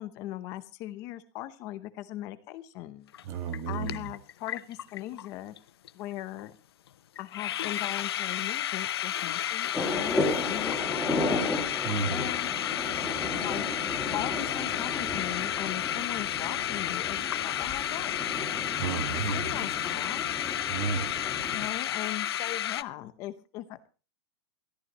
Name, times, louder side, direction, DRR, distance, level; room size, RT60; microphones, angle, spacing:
voice 1, 0.0-3.1 3.7-5.5 5.9-6.5 7.2-11.4 11.9-12.5 13.4-13.7 14.1-18.2 19.3-20.3 21.5-23.9, left 14 dB, 20° left, 13 dB, 0.8 m, -39 dB
sound 1, 3.1-3.2 3.5-5.3 5.6-5.7 5.8-6.1 6.4-6.5 6.9-7.0 7.2-22.8, left 11 dB, 65° left, 0.7 m, -32 dB
voice 2, 3.2-4.1 11.8-12.2 18.8-19.5 20.7-21.1, right 6 dB, 20° right, 8 dB, 1.5 m, -32 dB
sound 2, 9.7-21.7, left 2 dB, 5° left, 2.2 m, -34 dB
22.5 x 14.5 x 3.0 m, 0.33 s
supercardioid pair, 180°, 14 cm